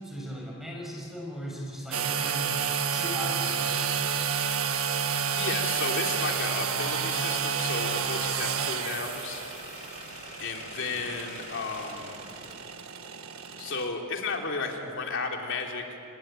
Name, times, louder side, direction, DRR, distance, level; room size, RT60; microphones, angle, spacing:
voice 1, 0.0-4.1, equal, ahead, -2 dB, 5.9 m, -38 dB
sound 1, 1.9-13.9, right 7 dB, 65° right, 1.6 m, -30 dB
voice 2, 5.3-9.4 10.4-12.1 13.6-16.0, left 4 dB, 55° left, 1 dB, 3.5 m, -33 dB
Domestic sounds home sounds, 7.6-12.6, left 3 dB, 35° left, 5.9 m, -46 dB
28.5 x 21.0 x 9.1 m, 2.6 s
head